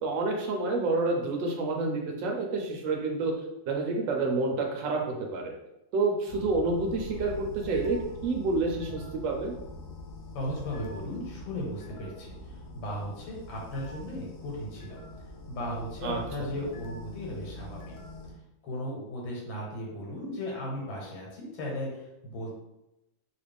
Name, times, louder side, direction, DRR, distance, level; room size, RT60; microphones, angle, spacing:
voice 1, 0.0-3.3 3.7-5.5 5.9-9.5 16.0-16.5, right 3 dB, 75° right, 1 dB, 1.3 m, -29 dB
sound 1, 6.3-18.3, left 1 dB, 70° left, 1.1 m, -44 dB
voice 2, 10.4-15.0 15.5-17.9 18.6-22.6, left 1 dB, 90° left, -3 dB, 1.9 m, -36 dB
3.7 x 2.4 x 3.4 m, 0.91 s
omnidirectional pair, 2.1 m